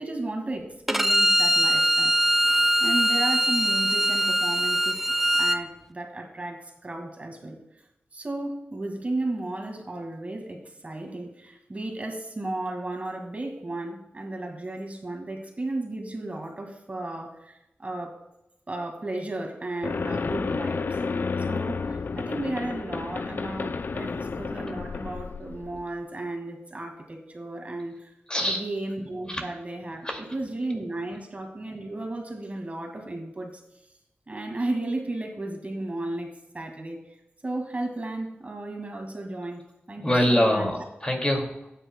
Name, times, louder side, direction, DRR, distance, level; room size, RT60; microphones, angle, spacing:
voice 1, 0.0-2.1 2.8-5.0 5.4-7.6 8.1-18.2 18.7-21.0 21.4-28.1 28.4-33.6 34.3-37.2 37.4-40.7, right 2 dB, 35° right, 3 dB, 1.8 m, -34 dB
Bowed string instrument, 0.9-5.6, equal, 5° right, 0.5 m, -22 dB
sound 1, 19.8-25.9, left 4 dB, 55° left, 0.3 m, -31 dB
voice 2, 28.3-28.6 29.3-29.4 30.0-30.2 40.0-41.7, equal, 20° left, 2 dB, 2.2 m, -24 dB
18.5 x 9.2 x 2.2 m, 0.87 s
wide cardioid pair, 85°, 4 cm